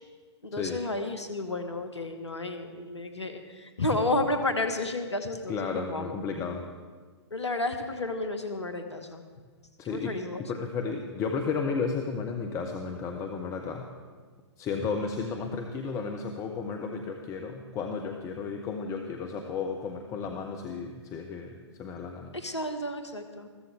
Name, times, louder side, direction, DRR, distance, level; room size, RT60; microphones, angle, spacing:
voice 1, 0.4-6.2 7.3-9.2 9.9-10.4 22.3-23.5, left 2 dB, 75° left, 7 dB, 1.4 m, -31 dB
voice 2, 5.5-6.6 9.8-10.1 10.5-13.9 14.6-22.3, left 5 dB, 20° left, 3 dB, 1.1 m, -33 dB
21.0 x 15.0 x 3.5 m, 1.5 s
figure-of-eight pair, 115°, 15 cm